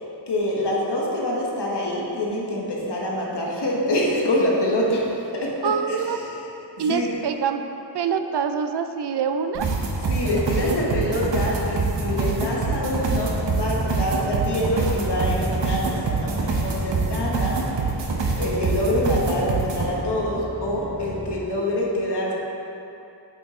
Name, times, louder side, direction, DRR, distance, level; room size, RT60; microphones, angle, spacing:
voice 1, 0.0-6.1 6.8-7.1 10.1-17.6 18.4-22.3, left 1 dB, 70° left, -3 dB, 1.4 m, -25 dB
voice 2, 5.6-6.3 6.8-7.7 7.9-9.7, right 6 dB, 70° right, 8 dB, 0.5 m, -25 dB
sound 1, 9.5-19.9, right 3 dB, 85° right, 0.9 m, -25 dB
sound 2, 13.1-21.4, right 2 dB, 10° right, 1.0 m, -36 dB
8.4 x 5.1 x 3.7 m, 3.0 s
wide cardioid pair, 80°, 42 cm